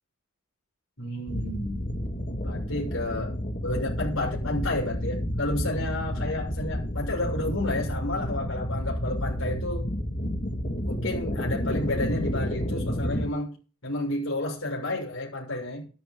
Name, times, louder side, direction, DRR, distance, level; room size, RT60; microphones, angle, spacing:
voice 1, 1.0-1.8 2.4-3.3 3.6-9.8 10.8-13.6 13.8-15.9, left 1 dB, 65° left, -2 dB, 7.2 m, -31 dB
sound 1, 1.3-13.3, equal, 40° left, 2.3 m, -30 dB
13.0 x 12.0 x 3.9 m, 0.37 s
head